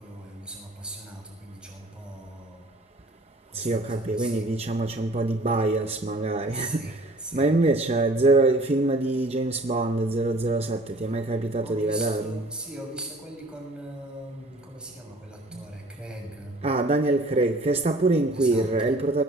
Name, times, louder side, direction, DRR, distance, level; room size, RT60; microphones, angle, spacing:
voice 1, 0.0-2.7 3.5-4.5 6.4-7.4 11.6-16.6 18.3-18.9, right 1 dB, 5° right, 0 dB, 6.4 m, -39 dB
voice 2, 3.5-7.0 7.3-12.4 15.5-15.6 16.6-19.2, right 2 dB, 30° right, 7 dB, 0.7 m, -24 dB
21.5 x 19.0 x 8.1 m, 1.3 s
head